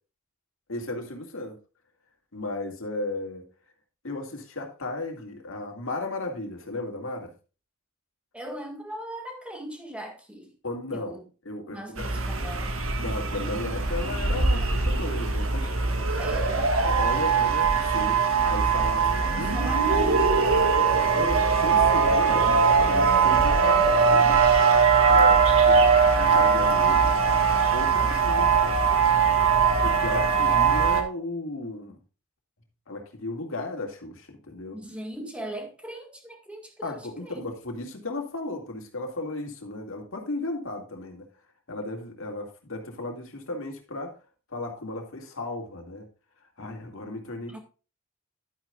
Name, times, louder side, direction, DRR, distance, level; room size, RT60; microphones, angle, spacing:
voice 1, 0.7-1.6 2.3-3.4 4.0-7.3 10.6-11.2 11.4-12.1 13.0-15.7 16.3-16.4 16.8-19.5 21.2-24.4 25.0-27.3 27.7-28.8 29.8-32.0 32.9-34.8 36.8-41.3 41.7-44.1 44.5-46.1 46.6-47.6, left 2 dB, 65° left, 2.2 m, -35 dB
voice 2, 8.3-10.5 10.9-11.2 11.7-12.8 16.2-16.7 19.1-21.5 28.1-28.2 34.7-36.9 37.2-37.5 47.5-47.6, right 1 dB, 5° right, 1.8 m, -39 dB
sound 1, 12.0-31.0, right 5 dB, 65° right, 1.6 m, -21 dB
11.5 x 9.1 x 2.4 m
head